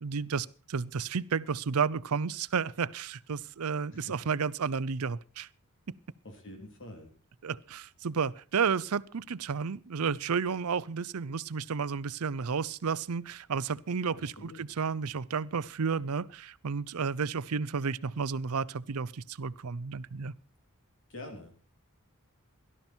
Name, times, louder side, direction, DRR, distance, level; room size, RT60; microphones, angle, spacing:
voice 1, 0.0-5.5 7.4-20.3, right 5 dB, 75° right, 0.6 m, -32 dB
voice 2, 6.2-7.1 14.1-14.7 21.1-21.6, left 1 dB, 60° left, 3.3 m, -46 dB
17.5 x 12.5 x 4.4 m
head